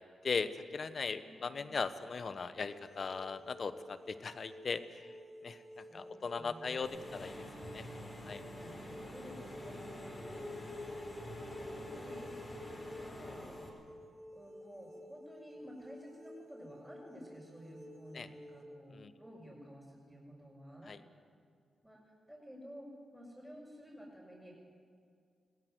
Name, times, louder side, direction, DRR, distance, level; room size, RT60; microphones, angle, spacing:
voice 1, 0.0-4.8 5.4-7.8 8.2-8.4 18.1-18.3 18.9-19.1 20.9-21.0, left 5 dB, 55° left, 12 dB, 1.1 m, -39 dB
voice 2, 1.2-1.7 5.5-7.2 8.3-10.6 11.6-12.5 13.0-13.5 14.3-20.9 21.8-22.0 22.3-24.5, equal, 5° right, -7 dB, 6.5 m, -53 dB
sound 1, 2.7-18.6, equal, 50° right, 3.4 m, -53 dB
Engine / Mechanisms, 6.8-13.7, left 1 dB, 30° left, 5.5 m, -46 dB
21.5 x 16.5 x 7.9 m, 2.3 s
cardioid pair, 60°, 0 cm